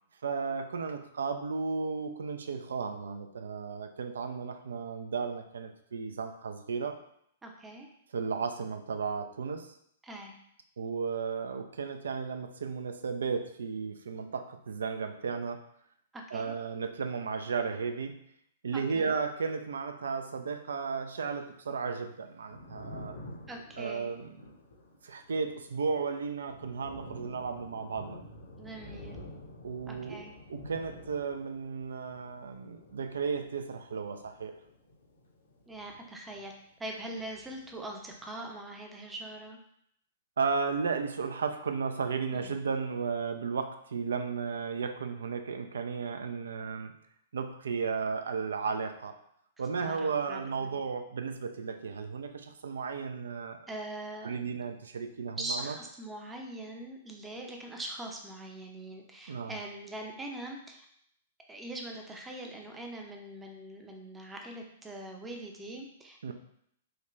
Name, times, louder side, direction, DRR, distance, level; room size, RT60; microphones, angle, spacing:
voice 1, 0.2-7.0 8.1-9.7 10.8-15.6 16.3-18.2 18.6-23.2 23.8-24.3 25.0-28.2 29.6-30.2 30.5-34.6 40.4-46.9 47.3-49.1 49.6-53.6 54.2-55.7 59.3-59.5 66.2-66.3, right 5 dB, 70° right, 7 dB, 0.3 m, -34 dB
voice 2, 7.4-7.9 10.0-10.3 16.1-16.5 18.7-19.1 23.5-24.1 28.6-29.2 29.9-30.3 35.7-36.5 36.8-39.6 42.3-42.6 49.8-50.7 53.7-54.4 55.4-60.9 61.5-66.3, right 1 dB, 10° right, 2 dB, 0.6 m, -42 dB
Thunder, 22.3-36.7 37.0-38.2, left 1 dB, 75° left, 0.9 m, -50 dB
3.7 x 2.2 x 3.0 m, 0.71 s
figure-of-eight pair, 110°, 0 cm